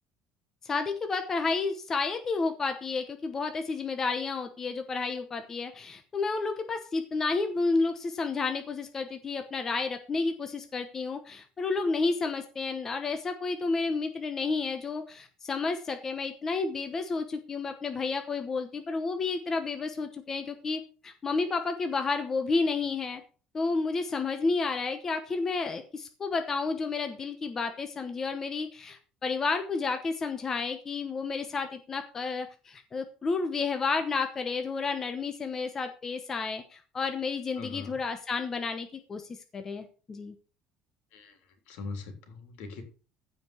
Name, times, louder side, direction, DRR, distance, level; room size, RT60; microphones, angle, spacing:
voice 1, 0.6-23.2 23.5-40.3, left 4 dB, 20° left, 7 dB, 0.9 m, -31 dB
voice 2, 37.6-38.0 41.1-41.4 41.7-42.8, left 4 dB, 70° left, 6 dB, 3.4 m, -41 dB
15.0 x 5.2 x 6.2 m, 0.37 s
cardioid pair, 180°, 2 cm